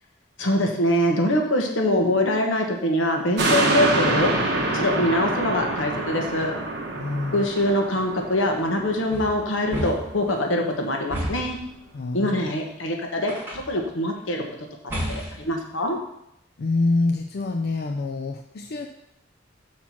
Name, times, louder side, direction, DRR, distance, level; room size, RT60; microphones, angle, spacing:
voice 1, 0.4-4.3 4.7-6.5 7.3-11.6 12.1-13.3 13.7-14.4 15.1-16.0, left 1 dB, 80° left, 2 dB, 1.2 m, -23 dB
sound 1, 3.4-10.0 10.5-10.6, right 2 dB, 60° right, 1.4 m, -26 dB
voice 2, 7.0-7.5 11.9-12.5 16.6-18.9, left 3 dB, 55° left, 3 dB, 0.4 m, -26 dB
sound 2, 9.1-10.3 11.1-11.6 13.3-13.8 14.9-15.5, equal, 10° right, 2.0 m, -31 dB
5.9 x 4.3 x 5.9 m, 0.80 s
head